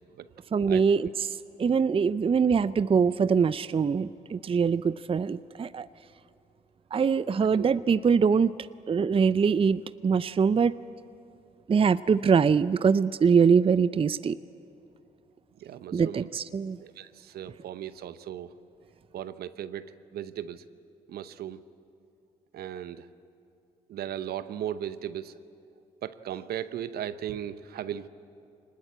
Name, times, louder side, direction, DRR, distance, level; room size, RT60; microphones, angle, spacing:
voice 1, 0.5-5.9 6.9-8.6 8.9-10.8 11.7-14.4 15.9-16.8, right 6 dB, 35° right, 16 dB, 0.5 m, -23 dB
voice 2, 15.6-16.3 16.8-18.5 19.1-20.6 21.1-21.6 22.5-23.1 23.9-25.3 26.0-28.1, right 10 dB, 70° right, 14 dB, 0.9 m, -37 dB
23.5 x 20.0 x 8.7 m, 2.5 s
hypercardioid pair, 50°, 17 cm